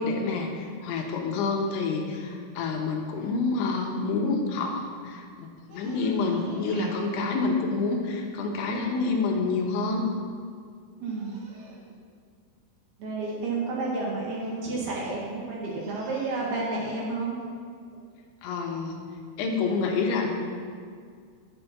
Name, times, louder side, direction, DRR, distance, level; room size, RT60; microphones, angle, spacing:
voice 1, 0.0-5.5 5.7-10.0 18.4-19.0 19.4-20.3, left 3 dB, 80° left, 1 dB, 3.4 m, -28 dB
voice 2, 5.7-6.9 11.0-11.8 13.0-17.4 17.9-18.0, right 3 dB, 65° right, -3 dB, 3.2 m, -32 dB
11.5 x 8.0 x 5.8 m, 2.1 s
omnidirectional pair, 5.5 m